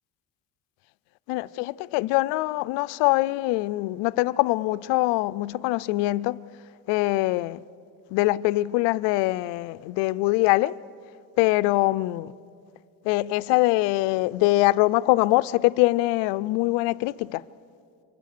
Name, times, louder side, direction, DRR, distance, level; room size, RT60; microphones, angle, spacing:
voice 1, 1.3-6.4 6.9-7.6 8.1-10.8 11.4-12.3 13.0-17.4, left 19 dB, 85° left, 0.6 m, -23 dB
27.0 x 24.5 x 6.7 m
cardioid pair, 110°, 41 cm